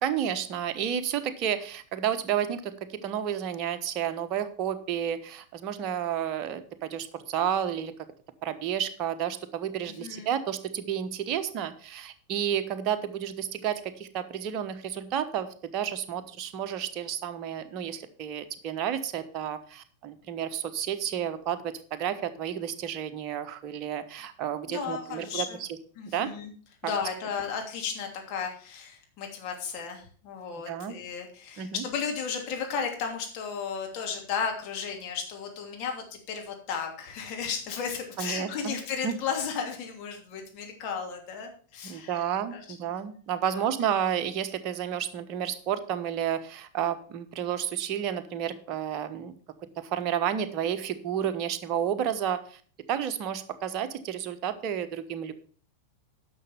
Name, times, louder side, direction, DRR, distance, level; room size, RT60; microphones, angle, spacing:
voice 1, 0.0-7.9 8.4-15.5 15.7-25.4 26.1-26.3 26.8-26.9 30.7-30.9 31.6-31.8 38.2-38.7 39.0-39.2 41.8-49.3 49.8-52.6 52.9-55.3, right 9 dB, 40° right, 9 dB, 1.1 m, -31 dB
voice 2, 9.8-10.3 24.7-25.6 25.9-26.5 26.8-42.8 43.4-43.7, left 6 dB, 40° left, 2 dB, 2.9 m, -34 dB
11.0 x 6.4 x 5.6 m, 0.43 s
figure-of-eight pair, 90°, 0 cm